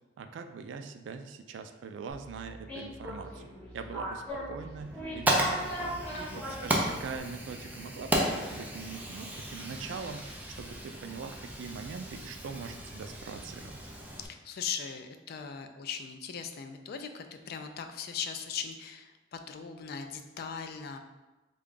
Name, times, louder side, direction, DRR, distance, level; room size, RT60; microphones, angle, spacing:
voice 1, 0.2-6.1 6.3-13.8, right 5 dB, 80° right, 8 dB, 0.3 m, -42 dB
sound 1, 2.1-7.2, equal, 10° left, 1.1 m, -39 dB
Fire, 4.8-14.3, right 1 dB, 10° right, 0.4 m, -34 dB
voice 2, 14.2-21.0, left 6 dB, 55° left, 7 dB, 0.3 m, -39 dB
3.6 x 2.3 x 3.8 m, 1.1 s
head